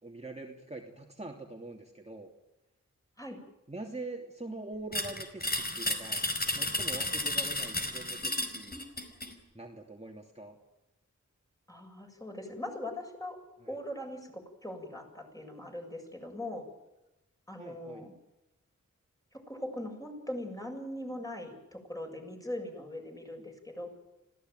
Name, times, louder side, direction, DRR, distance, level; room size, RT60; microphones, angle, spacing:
voice 1, 0.0-2.3 3.7-6.2 6.5-8.8 9.5-10.6 17.6-18.0, right 2 dB, 20° right, 1 dB, 2.9 m, -43 dB
sound 1, 4.9-9.3, left 1 dB, 30° left, 5.0 m, -32 dB
voice 2, 11.7-13.4 13.7-16.6 17.5-18.1 19.3-23.9, left 1 dB, 10° left, 2 dB, 7.4 m, -40 dB
26.0 x 16.5 x 9.3 m, 0.97 s
wide cardioid pair, 60°, 30 cm